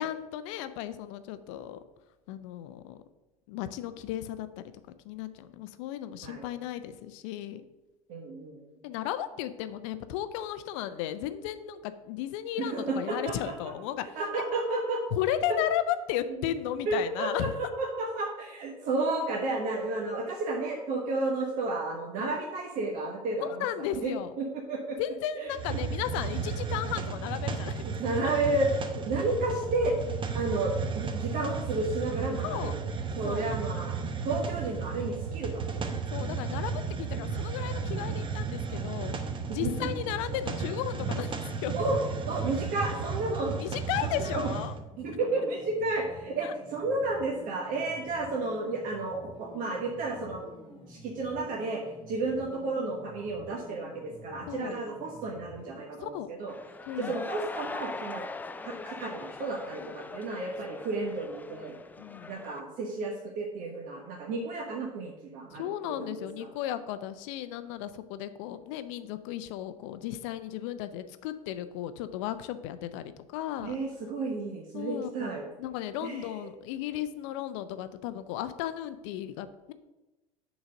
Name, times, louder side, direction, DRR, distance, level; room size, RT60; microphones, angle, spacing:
voice 1, 0.0-1.8 2.3-3.0 3.5-4.5 5.0-7.6 8.8-14.0 15.1-17.5 22.2-22.4 23.4-24.3 25.0-27.9 28.2-28.3 32.4-32.8 33.2-33.5 36.1-39.2 39.5-41.7 43.6-44.7 46.4-46.5 54.5-54.8 56.0-56.3 56.9-57.1 59.8-59.9 62.0-62.3 65.5-73.8 74.7-79.7, left 11 dB, 55° left, 12 dB, 0.6 m, -35 dB
voice 2, 8.1-8.6 12.6-13.5 14.1-15.4 16.3-16.5 16.8-25.0 25.3-25.8 27.8-30.0 30.3-32.8 33.1-34.0 34.2-36.1 39.6-39.9 41.7-42.0 42.2-43.6 44.0-44.5 45.0-50.5 50.9-56.5 57.0-58.3 58.6-61.8 62.3-65.7 66.0-66.5 73.6-75.4 76.0-76.5, right 2 dB, 45° right, 0 dB, 1.1 m, -32 dB
Hiss, 25.5-44.8, right 5 dB, 25° right, 0.9 m, -34 dB
sound 1, 37.0-55.8, left 1 dB, 25° left, 1.5 m, -50 dB
sound 2, 56.5-62.6, left 3 dB, 10° left, 0.4 m, -41 dB
6.2 x 4.0 x 6.2 m, 1.1 s
figure-of-eight pair, 70°, 19 cm